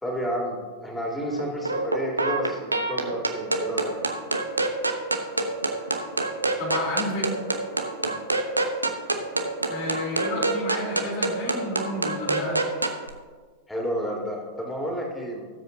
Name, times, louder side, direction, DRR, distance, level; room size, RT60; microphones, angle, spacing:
voice 1, 0.0-3.9 7.9-8.1 13.7-15.4, equal, 5° left, -1 dB, 2.9 m, -31 dB
sound 1, 1.4-13.1, right 2 dB, 85° right, 0.8 m, -27 dB
voice 2, 6.6-7.4 9.7-12.6, left 1 dB, 45° left, -2 dB, 3.5 m, -31 dB
18.5 x 7.7 x 2.8 m, 1.5 s
figure-of-eight pair, 90°, 0 cm